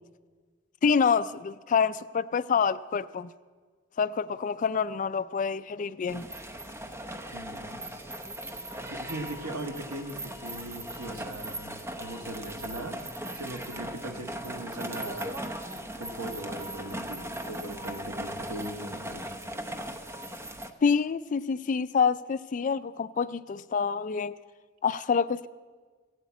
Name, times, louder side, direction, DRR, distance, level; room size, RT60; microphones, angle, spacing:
voice 1, 0.8-3.3 4.0-6.3 20.8-24.4 24.8-25.5, left 6 dB, 40° left, 0.3 m, -27 dB
sound 1, 6.1-20.7, right 1 dB, 10° right, 0.6 m, -38 dB
voice 2, 7.3-7.9 8.9-13.0 13.3-15.5 16.0-19.2, right 1 dB, 90° right, 1.4 m, -39 dB
15.5 x 8.0 x 8.3 m
head